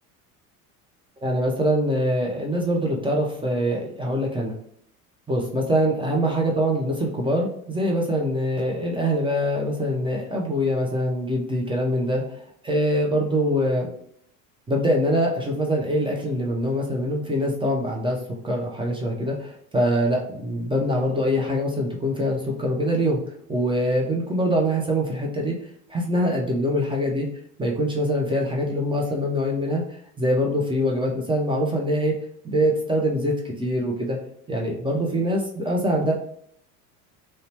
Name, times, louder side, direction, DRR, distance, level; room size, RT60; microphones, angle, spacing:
voice 1, 1.2-4.5 5.3-12.2 12.6-13.9 14.7-18.2 18.4-23.2 23.5-25.6 25.9-27.3 27.6-29.8 30.2-32.1 32.4-34.2 34.5-36.1, equal, 10° right, -1 dB, 0.5 m, -24 dB
2.8 x 2.1 x 2.7 m, 0.67 s
hypercardioid pair, 75°, 45 cm